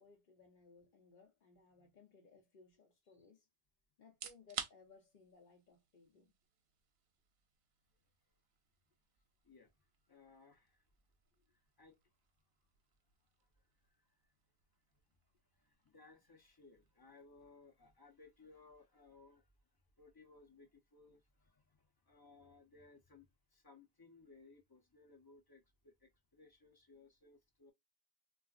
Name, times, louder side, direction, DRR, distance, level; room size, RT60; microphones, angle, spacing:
voice 1, 0.0-3.5 4.0-6.3, left 5 dB, 60° left, 0.8 m, -63 dB
sound 1, 4.0-18.9, right 8 dB, 80° right, 0.8 m, -55 dB
voice 2, 10.1-10.8 11.5-12.0 13.4-14.2 15.5-19.5 20.0-27.7, left 3 dB, 25° left, 0.7 m, -63 dB
3.6 x 2.4 x 2.4 m
omnidirectional pair, 1.0 m